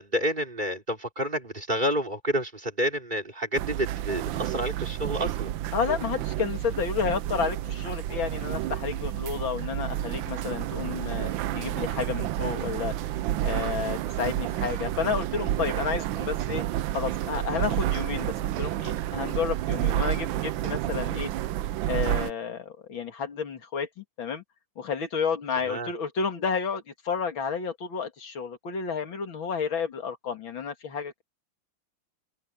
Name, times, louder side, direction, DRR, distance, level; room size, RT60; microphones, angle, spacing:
voice 1, 0.0-5.5 25.7-25.9, equal, 25° right, 3.7 m, -29 dB
sound 1, 3.5-22.3, right 13 dB, 75° right, 1.4 m, -30 dB
voice 2, 5.7-12.9 13.4-16.6 16.9-18.3 18.6-21.3 21.9-24.4 24.8-31.2, left 6 dB, 75° left, 3.0 m, -31 dB
open air
omnidirectional pair, 2.1 m